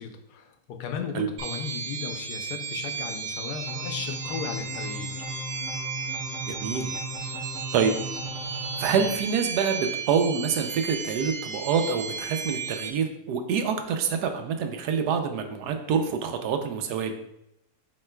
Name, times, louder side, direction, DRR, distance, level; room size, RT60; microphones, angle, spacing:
voice 1, 0.0-5.2, left 6 dB, 90° left, 6 dB, 1.2 m, -36 dB
sound 1, 1.4-12.9, right 5 dB, 60° right, 0.7 m, -35 dB
sound 2, 3.7-9.1, equal, 65° left, 1.1 m, -37 dB
voice 2, 6.5-6.9 7.4-7.5 7.7-7.9 8.8-17.1, right 6 dB, 90° right, 5 dB, 1.1 m, -26 dB
7.5 x 3.2 x 2.2 m, 0.84 s
omnidirectional pair, 1.7 m